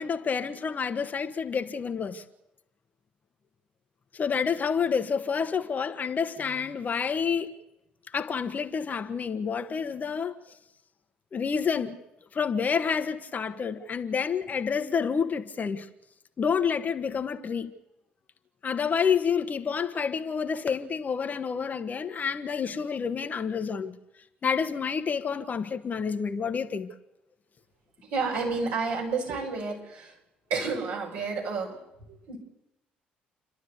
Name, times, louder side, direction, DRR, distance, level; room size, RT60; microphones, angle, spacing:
voice 1, 0.0-2.2 4.1-7.5 8.1-10.4 11.3-12.0 12.3-15.9 16.4-17.7 18.6-23.9 24.4-26.9, left 6 dB, 35° left, 1.5 m, -29 dB
voice 2, 28.1-30.1 30.5-31.8 32.1-32.4, right 4 dB, 65° right, 6.4 m, -30 dB
29.0 x 12.0 x 8.2 m
figure-of-eight pair, 50°, 5 cm